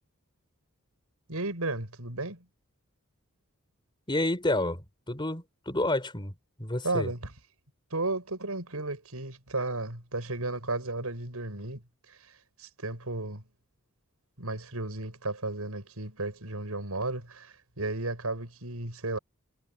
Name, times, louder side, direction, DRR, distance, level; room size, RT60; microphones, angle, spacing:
voice 1, 1.3-2.4 6.8-7.3 7.9-11.8 12.1-13.4 14.4-19.2, right 2 dB, 90° right, 5.8 m, -34 dB
voice 2, 4.1-6.3 6.6-7.1, left 1 dB, 20° left, 4.4 m, -29 dB
head